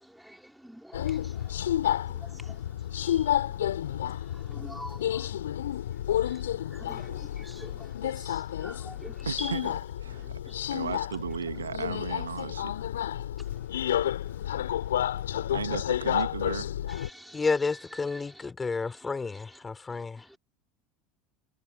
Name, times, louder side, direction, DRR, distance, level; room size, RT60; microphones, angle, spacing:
voice 1, 0.0-1.8 2.1-2.7 3.0-3.5 4.0-5.3 6.2-9.5 10.1-10.5 10.8-11.0 16.9-17.5 17.9-18.5 18.8-19.1 20.2-20.4, equal, ahead, 3.4 m, -47 dB
Subway metro underground, 0.9-17.1, left 11 dB, 70° left, 3.4 m, -31 dB
voice 2, 9.3-9.8 10.0-10.4 10.7-12.7 15.5-16.7, right 7 dB, 75° right, 2.0 m, -35 dB
voice 3, 17.3-20.2, left 4 dB, 20° left, 3.7 m, -30 dB
figure-of-eight pair, 70°, 0 cm